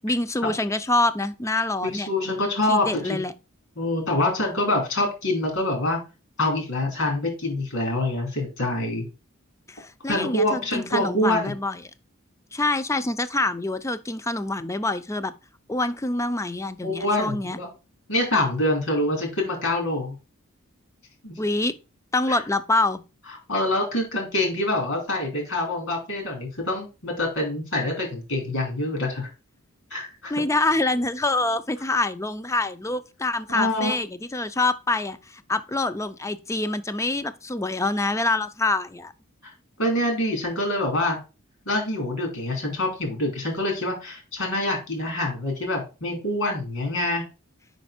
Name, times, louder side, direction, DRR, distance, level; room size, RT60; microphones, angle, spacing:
voice 1, 0.0-2.1 2.7-3.3 9.7-11.8 12.5-15.3 15.7-17.6 21.4-21.7 22.1-23.0 30.3-39.1, left 2 dB, 15° left, 0.5 m, -26 dB
voice 2, 1.8-3.2 3.8-6.0 6.4-9.0 10.1-11.5 16.8-17.7 18.1-20.2 21.2-21.3 22.3-22.4 23.5-29.3 29.9-30.3 33.5-34.0 39.8-41.2 41.7-47.2, left 1 dB, 75° left, 3.0 m, -25 dB
5.2 x 5.2 x 5.0 m
head